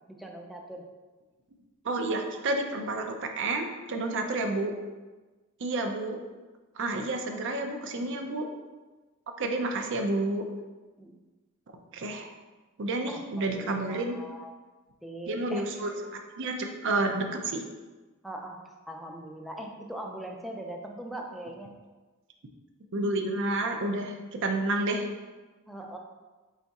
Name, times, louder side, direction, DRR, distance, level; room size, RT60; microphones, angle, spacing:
voice 1, 0.1-0.8 11.0-11.1 13.1-14.5 15.0-15.7 18.2-18.6 18.9-21.8 25.7-26.0, right 1 dB, ahead, 0 dB, 0.4 m, -41 dB
voice 2, 1.8-4.7 5.6-6.2 6.8-8.5 9.4-10.4 11.9-12.3 12.8-14.1 15.3-17.6 22.9-25.1, right 2 dB, 60° right, 4 dB, 0.5 m, -30 dB
4.3 x 2.4 x 4.0 m, 1.2 s
head